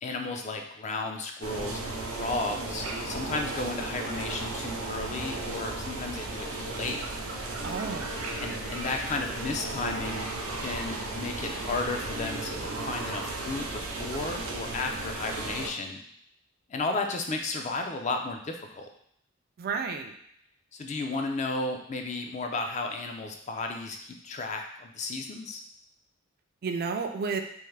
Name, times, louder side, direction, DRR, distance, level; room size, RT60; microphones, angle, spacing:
voice 1, 0.0-7.0 8.4-10.3 10.6-16.0 16.7-18.9 20.7-25.6, left 3 dB, 35° left, 3 dB, 0.4 m, -34 dB
sound 1, 1.4-15.7, right 2 dB, 80° right, 0.7 m, -35 dB
voice 2, 7.6-8.2 19.6-20.1 26.6-27.4, right 5 dB, 45° right, 5 dB, 0.3 m, -31 dB
3.5 x 2.6 x 3.2 m, 0.69 s
head